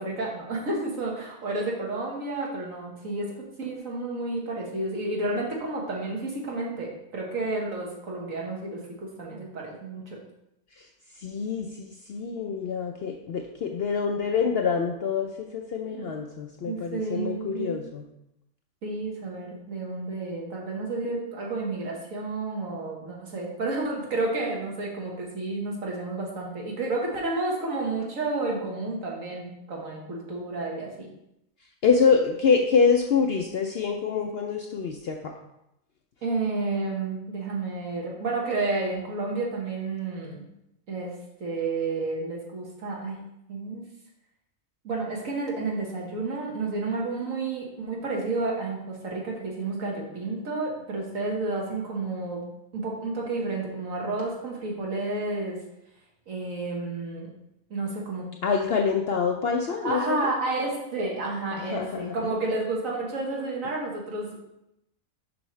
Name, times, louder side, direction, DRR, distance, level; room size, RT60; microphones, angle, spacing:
voice 1, 0.0-10.2 15.9-16.1 16.6-17.8 18.8-31.1 36.2-40.5 40.9-41.1 41.4-43.9 44.8-52.5 52.7-55.6 56.3-57.3 57.7-58.3 59.8-64.4, right 3 dB, 70° right, -2 dB, 1.8 m, -31 dB
voice 2, 11.2-18.0 31.8-35.3 58.4-60.3 61.5-62.6, left 5 dB, 65° left, 3 dB, 0.6 m, -26 dB
7.0 x 5.6 x 3.1 m, 0.84 s
omnidirectional pair, 1.5 m